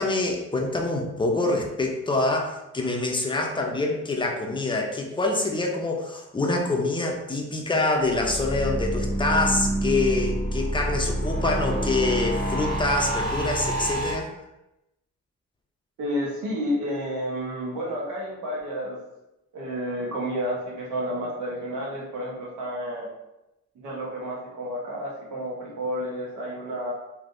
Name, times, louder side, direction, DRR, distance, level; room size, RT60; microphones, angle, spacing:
voice 1, 0.0-14.3, left 2 dB, 15° left, 1 dB, 0.5 m, -25 dB
sound 1, 8.0-14.1, right 1 dB, 60° right, 1.5 m, -27 dB
voice 2, 16.0-19.0 19.5-23.1 23.8-26.9, equal, 80° right, -4 dB, 1.1 m, -30 dB
3.3 x 2.5 x 2.5 m, 0.93 s
cardioid pair, 90°, 30 cm